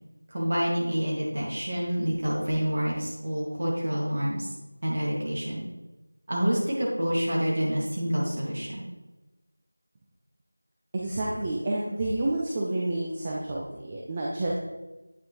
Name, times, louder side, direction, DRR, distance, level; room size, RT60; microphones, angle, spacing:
voice 1, 0.3-4.5 4.8-5.6 6.3-8.9, equal, 35° right, -4 dB, 2.0 m, -28 dB
voice 2, 10.9-14.5, right 2 dB, 15° right, -4 dB, 0.5 m, -29 dB
8.8 x 6.1 x 3.1 m, 1.1 s
figure-of-eight pair, 175°, 0 cm